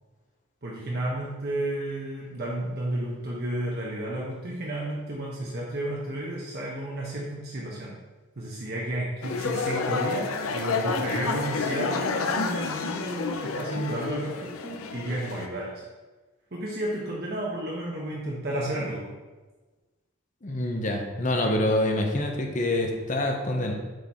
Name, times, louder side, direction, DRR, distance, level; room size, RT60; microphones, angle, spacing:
voice 1, 0.6-8.0 8.4-15.7 16.5-19.1 21.4-21.5, right 1 dB, 50° right, -4 dB, 0.9 m, -32 dB
sound 1, 9.2-15.5, left 4 dB, 85° left, 0.5 m, -29 dB
voice 2, 20.4-23.7, left 1 dB, 35° left, 2 dB, 0.8 m, -26 dB
6.4 x 4.0 x 4.2 m, 1.2 s
head